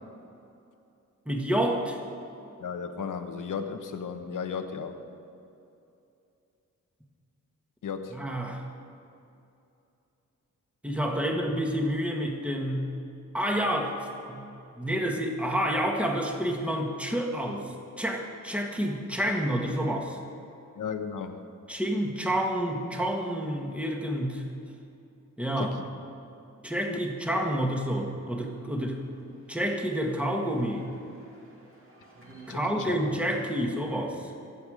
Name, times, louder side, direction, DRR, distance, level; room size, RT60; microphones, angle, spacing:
voice 1, 1.3-2.0 8.1-8.6 10.8-12.9 13.3-13.9 14.3-14.4 14.8-20.2 21.7-24.4 25.4-25.7 26.6-29.0 29.5-30.9 32.5-34.3, equal, 5° right, 1 dB, 1.8 m, -29 dB
voice 2, 2.6-5.0 7.8-8.2 20.8-21.5 25.6-25.8 26.9-27.0 32.5-33.0, left 6 dB, 80° left, 6 dB, 1.2 m, -35 dB
sound 1, 28.0-33.7, right 2 dB, 45° right, 2.6 m, -52 dB
24.0 x 8.3 x 5.1 m, 2.7 s
wide cardioid pair, 125°, 31 cm